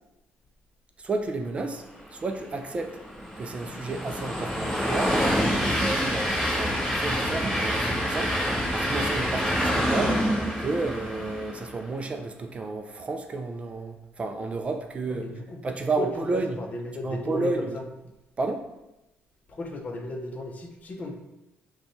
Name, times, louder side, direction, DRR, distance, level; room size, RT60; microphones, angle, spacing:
voice 1, 1.0-1.8 2.1-3.0 3.4-5.2 5.5-8.4 8.7-10.2 10.6-15.3 15.6-16.6 17.0-17.8 18.4-18.7, right 3 dB, 30° right, 5 dB, 0.3 m, -31 dB
Train, 2.4-11.8, equal, ahead, 1.5 m, -27 dB
voice 2, 15.1-15.6 16.0-16.1 16.3-17.8 19.5-21.2, left 2 dB, 35° left, 3 dB, 0.6 m, -35 dB
5.3 x 2.2 x 3.1 m, 0.94 s
cardioid pair, 115°, 4 cm